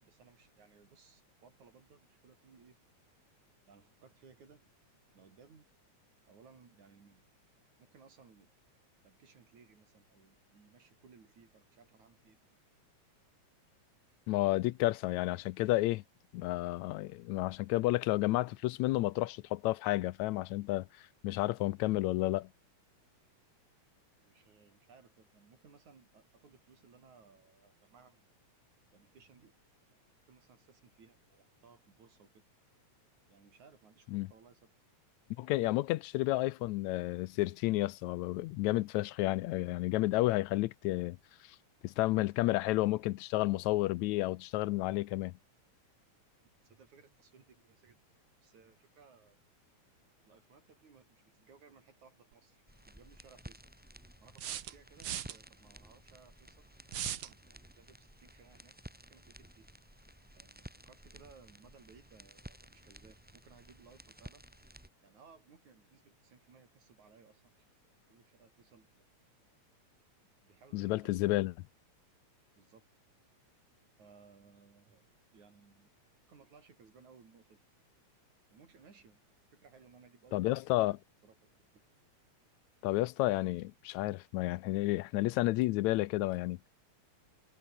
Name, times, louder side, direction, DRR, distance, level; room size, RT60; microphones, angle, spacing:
voice 1, 0.0-2.8 3.7-4.7 5.1-5.7 6.3-7.2 7.8-8.5 9.0-12.4 14.1-14.2 24.2-28.3 28.9-29.6 30.3-32.5 33.3-34.7 46.6-48.0 48.4-49.4 50.2-53.7 54.2-56.7 57.0-58.8 59.1-59.7 60.4-64.4 65.0-67.6 68.1-69.1 70.2-71.5 72.6-72.9 74.0-75.9 76.3-77.6 78.5-79.2 79.5-81.0 81.2-81.8, right 5 dB, 80° right, 5.5 m, -61 dB
voice 2, 14.3-16.0 16.3-20.9 21.2-22.5 34.1-34.3 35.4-41.2 41.8-45.3 70.7-71.5 80.3-81.0 82.8-86.6, left 18 dB, 80° left, 1.9 m, -31 dB
sound 1, 52.3-52.4 54.4-55.4 56.9-57.3, right 10 dB, 55° right, 1.7 m, -38 dB
sound 2, 52.7-64.9, equal, 5° right, 2.6 m, -54 dB
omnidirectional pair, 3.3 m